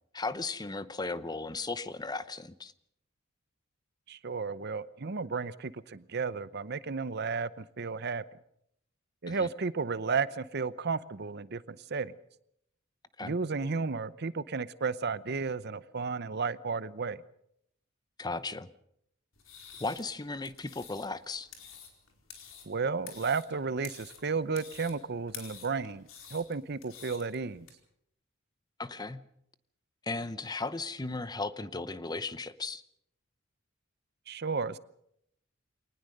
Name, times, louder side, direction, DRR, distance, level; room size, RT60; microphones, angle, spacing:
voice 1, 0.1-2.7 9.3-9.5 13.2-13.3 18.2-18.7 19.8-21.5 28.8-29.2 30.0-32.8, left 3 dB, 20° left, 14 dB, 0.8 m, -36 dB
voice 2, 4.1-8.2 9.2-12.1 13.2-17.2 22.7-27.7 34.3-34.8, right 4 dB, 55° right, 16 dB, 0.7 m, -33 dB
sound 1, 19.3-27.7, left 7 dB, 90° left, 4.5 m, -50 dB
24.0 x 19.0 x 6.6 m, 0.74 s
head